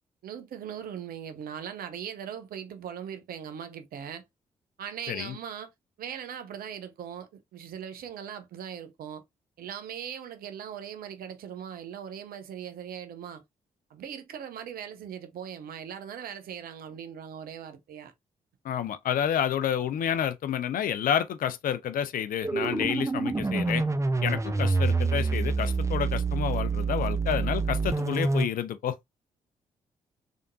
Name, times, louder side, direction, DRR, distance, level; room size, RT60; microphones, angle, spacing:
voice 1, 0.2-4.2 4.8-5.7 6.0-9.2 9.6-13.4 13.9-18.1, right 8 dB, 65° right, 0.8 m, -40 dB
voice 2, 18.6-23.8 24.2-29.0, left 9 dB, 60° left, 0.6 m, -29 dB
sound 1, 22.4-28.5, right 4 dB, 20° right, 0.7 m, -27 dB
3.6 x 3.5 x 2.6 m
hypercardioid pair, 45°, 16 cm